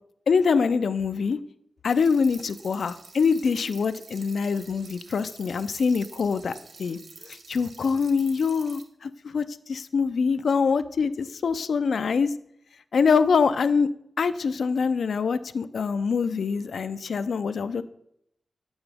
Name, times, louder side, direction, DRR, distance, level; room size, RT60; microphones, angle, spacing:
voice 1, 0.3-1.4 1.8-12.3 12.9-13.9 14.2-17.8, left 5 dB, 80° left, 12 dB, 0.3 m, -24 dB
sound 1, 1.9-8.8, right 3 dB, 65° right, 0.9 m, -48 dB
8.8 x 7.9 x 3.4 m, 0.74 s
wide cardioid pair, 150°, 0 cm